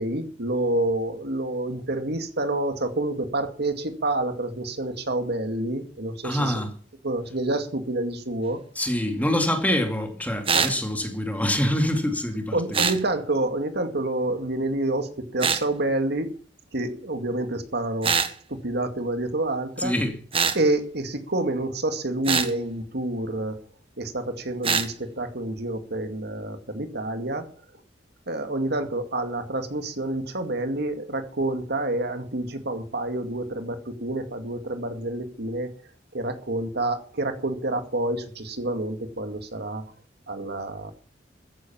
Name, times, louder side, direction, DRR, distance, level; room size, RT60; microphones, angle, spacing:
voice 1, 0.0-6.5 7.0-8.6 10.5-10.7 12.5-16.3 16.7-18.1 18.5-19.9 20.5-23.6 24.0-27.5 28.3-35.7 36.1-39.8 40.3-40.9, right 2 dB, 60° right, 2.2 m, -28 dB
voice 2, 6.2-6.7 8.8-12.8 19.8-20.2, left 1 dB, 10° left, 2.5 m, -25 dB
sound 1, 10.5-10.8 12.7-13.0 15.4-15.6 18.0-18.3 20.3-20.6 22.3-22.5 24.6-24.9, right 5 dB, 30° right, 1.4 m, -23 dB
14.5 x 10.5 x 7.3 m
head